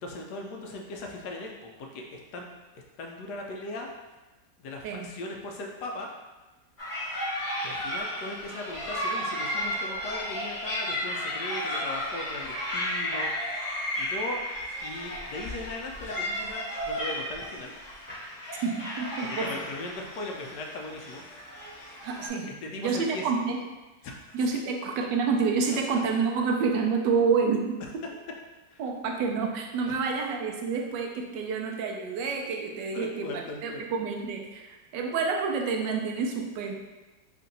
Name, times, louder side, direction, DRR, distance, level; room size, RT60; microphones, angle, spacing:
voice 1, 0.0-2.5 2.7-3.9 4.6-6.1 7.6-13.3 14.0-14.4 14.8-17.7 19.4-21.2 22.6-23.3 24.0-24.2 28.7-28.8 29.9-30.0 32.9-33.8, left 2 dB, 75° left, 1 dB, 1.1 m, -38 dB
sound 1, 6.8-22.3, equal, 15° left, 1.2 m, -33 dB
voice 2, 18.6-19.6 22.0-23.6 24.3-27.8 28.8-36.7, right 5 dB, 90° right, 2 dB, 1.2 m, -28 dB
3.7 x 2.5 x 4.0 m, 1.2 s
omnidirectional pair, 1.8 m